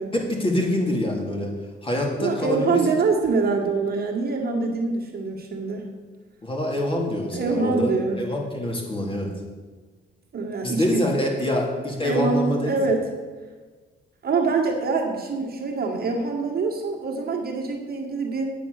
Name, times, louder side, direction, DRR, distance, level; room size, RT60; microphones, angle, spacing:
voice 1, 0.1-1.5 1.8-2.8 6.4-7.9 8.2-9.3 10.6-12.8, left 1 dB, 25° left, -1 dB, 3.0 m, -25 dB
voice 2, 2.1-5.9 7.3-8.2 10.3-11.1 12.0-13.0 14.2-18.5, right 4 dB, 50° right, 0 dB, 1.9 m, -25 dB
9.1 x 7.6 x 6.7 m, 1.4 s
cardioid pair, 90°, 20 cm